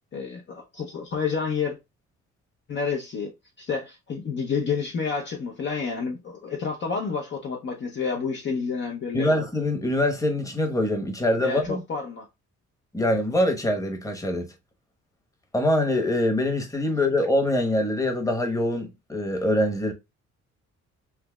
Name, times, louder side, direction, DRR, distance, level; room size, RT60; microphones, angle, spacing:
voice 1, 0.1-1.8 2.7-9.3 11.4-12.3, left 5 dB, 40° left, 0.7 m, -29 dB
voice 2, 9.1-11.8 12.9-14.5 15.5-19.9, left 1 dB, 10° left, 1.0 m, -24 dB
5.6 x 2.0 x 2.2 m
cardioid pair, 90°, 30 cm